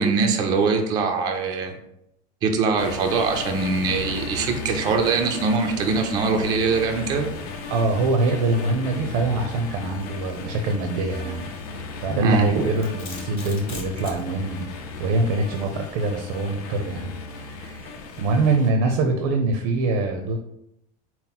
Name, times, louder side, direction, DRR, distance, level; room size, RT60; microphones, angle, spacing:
voice 1, 0.0-1.8 2.4-7.3 12.1-12.7, right 4 dB, 20° right, 4 dB, 0.3 m, -22 dB
sound 1, 2.8-18.7, left 3 dB, 80° left, 0.7 m, -36 dB
voice 2, 7.7-14.7 15.0-17.1 17.4-20.4, right 2 dB, 75° right, 3 dB, 0.5 m, -24 dB
Domestic sounds home sounds, 12.3-14.2, left 3 dB, 30° left, 0.9 m, -37 dB
4.2 x 2.1 x 3.9 m, 0.78 s
cardioid pair, 170°, 19 cm